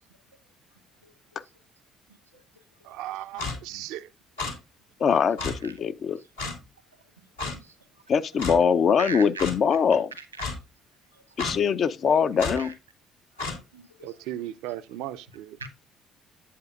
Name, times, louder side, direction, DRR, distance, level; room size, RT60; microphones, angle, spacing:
voice 1, 2.8-4.1 14.0-15.6, right 13 dB, 65° right, 0.5 m, -36 dB
Clock, 3.4-3.6 4.4-4.5 5.4-5.5 6.4-6.6 7.4-7.5 8.4-8.6 9.4-9.5 10.4-10.5 11.4-11.6 12.4-12.6 13.4-13.6, left 3 dB, 80° left, 2.4 m, -31 dB
voice 2, 5.0-6.2 8.1-10.1 11.4-12.7, left 6 dB, 45° left, 0.5 m, -22 dB
voice 3, 9.0-9.5 10.1-10.4 11.1-11.2 12.6-12.7 13.7-14.2 15.6-15.7, right 4 dB, 90° right, 1.2 m, -39 dB
8.5 x 8.1 x 2.4 m
figure-of-eight pair, 50°, 0 cm